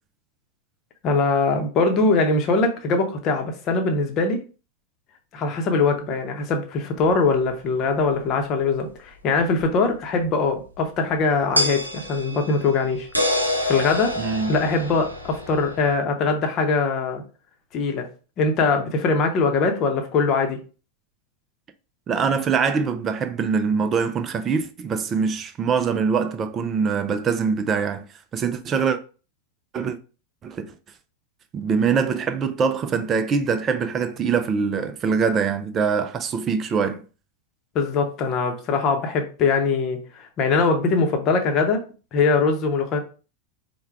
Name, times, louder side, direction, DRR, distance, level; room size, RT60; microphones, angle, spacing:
voice 1, 1.0-4.4 5.3-13.1 13.7-14.2 14.5-17.2 17.7-18.1 18.4-20.6 37.7-41.8 42.1-43.0, left 4 dB, 35° left, 0.8 m, -22 dB
sound 1, 7.1-7.2 9.6-9.7 11.5-15.9, left 1 dB, 90° right, 0.7 m, -27 dB
voice 2, 14.2-14.5 22.1-28.1 28.3-29.0 29.7-30.0 30.4-30.7 31.5-37.0, right 6 dB, 25° right, 0.4 m, -23 dB
4.5 x 2.2 x 3.4 m
figure-of-eight pair, 90°, 0 cm